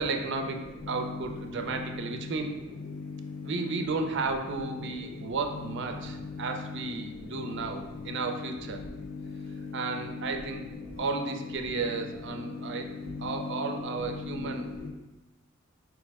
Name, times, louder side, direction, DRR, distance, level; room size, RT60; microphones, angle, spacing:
voice 1, 0.0-2.6 3.4-8.8 9.7-10.7 11.0-12.9 13.2-14.7, right 4 dB, 60° right, 4 dB, 0.5 m, -33 dB
voice 2, 0.8-1.2 1.6-2.3 2.8-3.5 4.8-4.9 5.9-6.5 7.3-7.6 9.0-10.3 12.6-12.7 13.1-14.9, left 4 dB, 80° left, 1 dB, 0.7 m, -38 dB
4.7 x 2.0 x 4.7 m, 1.1 s
head